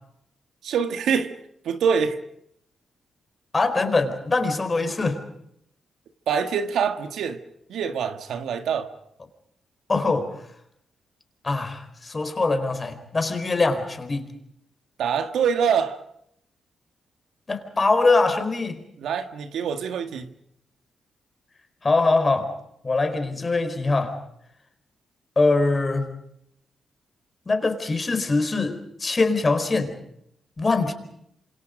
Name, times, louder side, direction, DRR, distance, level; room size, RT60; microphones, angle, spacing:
voice 1, 0.6-1.3 1.6-2.2 6.3-7.4 7.7-8.9 15.0-16.0 19.0-20.3, right 7 dB, 85° right, 1.8 m, -25 dB
voice 2, 3.5-5.2 9.2-9.3 9.9-10.4 11.4-14.3 17.5-18.8 21.8-22.5 22.8-24.2 25.4-26.2 27.5-30.0 30.6-30.9, left 3 dB, 35° left, 4.5 m, -23 dB
27.5 x 26.5 x 5.2 m
cardioid pair, 75°, 0 cm